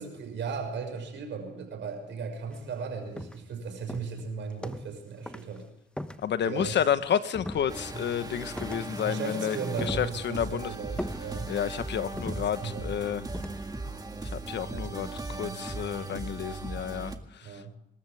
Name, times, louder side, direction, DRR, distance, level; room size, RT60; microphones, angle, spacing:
voice 1, 0.0-5.7 6.4-6.8 9.0-11.5 12.3-13.0 14.6-16.4 17.4-17.8, right 5 dB, 70° right, 4 dB, 6.4 m, -37 dB
sound 1, 2.5-2.7 3.2-3.6 3.9-5.0 5.3-5.6 6.0-7.0 7.3-8.1 8.6-9.2 9.5-10.5 11.0-11.7 12.2-12.9 13.3-13.7, left 1 dB, 5° left, 1.0 m, -40 dB
voice 2, 6.2-10.7 11.5-13.2 14.3-17.8, left 9 dB, 60° left, 12 dB, 1.2 m, -31 dB
sound 2, 7.7-17.2, right 2 dB, 20° right, 1.9 m, -38 dB
27.0 x 13.5 x 3.6 m, 0.81 s
cardioid pair, 90°, 20 cm